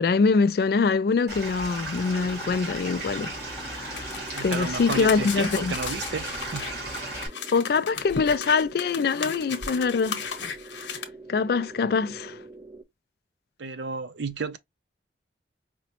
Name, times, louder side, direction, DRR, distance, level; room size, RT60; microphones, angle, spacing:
voice 1, 0.0-3.3 3.7-4.1 4.4-5.7 7.5-10.2 10.8-11.0 11.3-12.4, left 4 dB, 55° left, 0.3 m, -24 dB
Stream / Liquid, 1.3-7.3, right 1 dB, 55° right, 1.9 m, -35 dB
sound 1, 2.0-12.8, right 2 dB, 15° right, 0.6 m, -45 dB
sound 2, 4.0-11.0, left 6 dB, 80° left, 0.8 m, -36 dB
voice 2, 4.3-6.7 13.6-14.6, right 4 dB, 75° right, 0.5 m, -32 dB
4.9 x 2.1 x 2.9 m
head